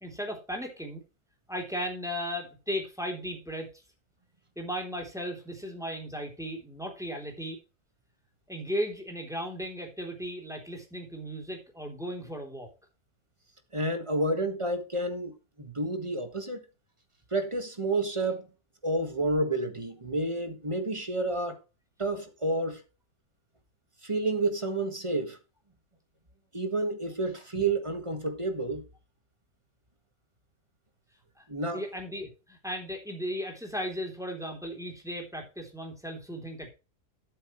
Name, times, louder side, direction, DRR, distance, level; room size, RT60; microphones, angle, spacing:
voice 1, 0.0-1.0 1.5-3.7 4.5-7.6 8.5-12.7 31.7-36.7, equal, ahead, 3.2 m, -36 dB
voice 2, 13.7-15.3 15.6-16.6 17.3-18.4 18.8-21.6 22.0-22.8 24.0-25.4 26.5-28.8 31.5-31.8, right 2 dB, 20° right, 1.6 m, -30 dB
12.5 x 8.1 x 3.2 m
omnidirectional pair, 1.6 m